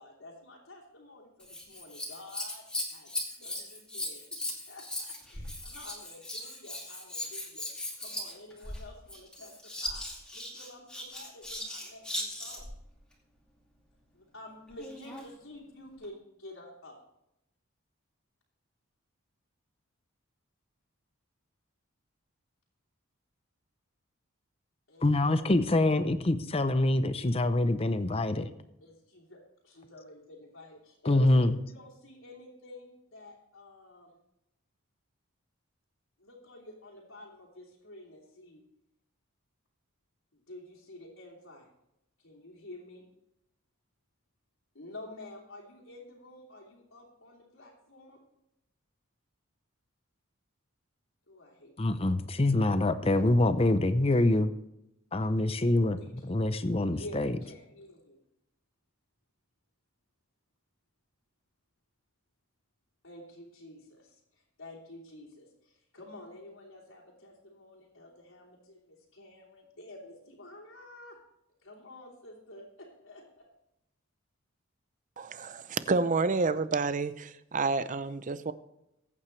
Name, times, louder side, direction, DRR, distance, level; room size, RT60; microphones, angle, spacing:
voice 1, 0.0-2.6 2.9-4.4 4.7-10.0 10.3-12.7 14.1-17.0 24.9-25.5 28.8-34.2 36.2-38.6 40.3-41.7 42.2-43.0 44.7-48.2 51.3-52.1 55.9-56.3 56.9-58.2 63.0-71.2 71.6-73.5, left 1 dB, 80° left, -8 dB, 3.0 m, -50 dB
Scissors, 1.4-12.8 14.7-15.3 16.0-16.1, left 1 dB, 5° left, 2.4 m, -38 dB
voice 2, 25.0-28.5 31.1-31.6 51.8-54.5 55.1-57.3, left 2 dB, 30° left, 11 dB, 0.6 m, -25 dB
voice 3, 75.2-78.5, right 4 dB, 35° right, 14 dB, 0.5 m, -29 dB
21.5 x 8.7 x 3.3 m, 0.86 s
head